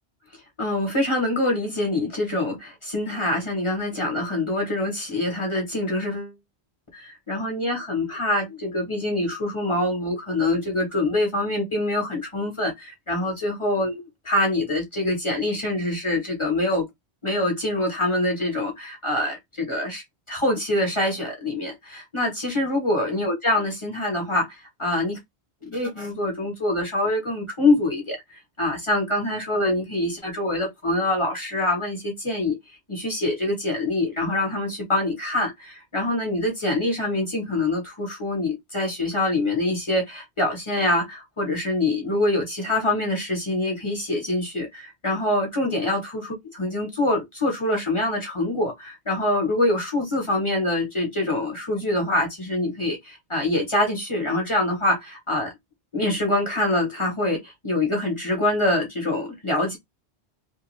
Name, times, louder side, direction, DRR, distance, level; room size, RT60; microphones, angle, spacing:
voice 1, 0.6-6.3 6.9-14.0 14.2-16.9 17.2-20.0 20.3-25.2 25.6-32.6 32.9-55.5 55.9-59.8, left 1 dB, 30° left, 0.9 m, -25 dB
2.5 x 2.2 x 3.0 m
omnidirectional pair, 1.1 m